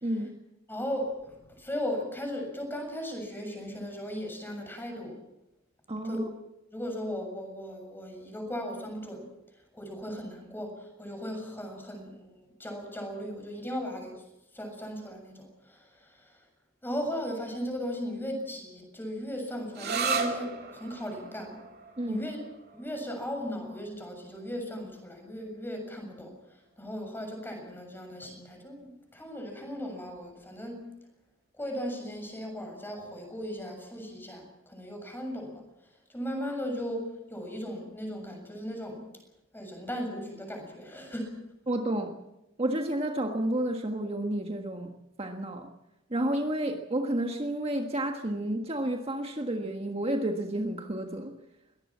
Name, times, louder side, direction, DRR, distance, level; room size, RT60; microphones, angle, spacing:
voice 1, 0.7-5.2 6.0-6.2 6.7-9.3 9.7-14.2 14.5-16.4 16.8-21.6 22.1-22.4 22.7-26.3 26.8-30.8 31.6-39.0 39.5-41.3, equal, 10° left, 3 dB, 7.1 m, -37 dB
voice 2, 5.9-6.3 22.0-22.3 41.7-42.1 42.6-44.9 45.2-45.7 46.1-51.3, right 1 dB, 30° right, 3 dB, 1.5 m, -30 dB
sound 1, 19.7-27.1, right 4 dB, 55° right, 2.8 m, -37 dB
22.5 x 19.0 x 7.4 m, 0.93 s
head